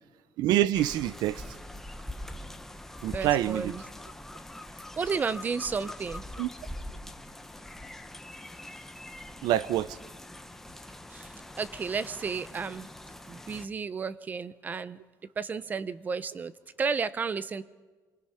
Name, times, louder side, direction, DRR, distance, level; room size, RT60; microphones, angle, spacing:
voice 1, 0.4-1.4 3.0-3.7 6.4-6.5 9.4-10.0, right 13 dB, 80° right, 0.6 m, -26 dB
sound 1, 0.7-13.7, left 1 dB, 5° left, 0.9 m, -43 dB
voice 2, 3.1-3.8 5.0-6.2 11.1-11.3 11.5-12.9 13.3-15.0 15.4-16.5 16.8-17.6, right 5 dB, 25° right, 0.6 m, -32 dB
28.0 x 19.5 x 5.7 m
cardioid pair, 170°, 7 cm